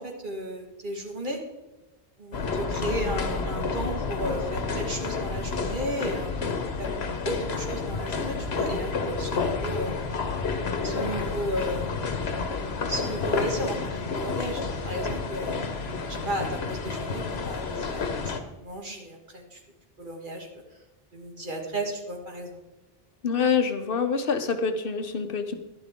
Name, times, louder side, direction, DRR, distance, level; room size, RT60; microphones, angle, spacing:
voice 1, 0.0-1.4 2.2-6.5 6.8-6.9 7.2-10.0 10.8-11.9 12.9-15.6 16.2-19.6 20.0-20.6 21.1-22.6, equal, 50° right, 1 dB, 2.0 m, -34 dB
sound 1, 2.3-18.4, left 4 dB, 80° left, 1.3 m, -30 dB
voice 2, 23.2-25.6, left 6 dB, 60° left, 8 dB, 1.0 m, -26 dB
11.5 x 11.5 x 3.6 m, 1.1 s
omnidirectional pair, 1.1 m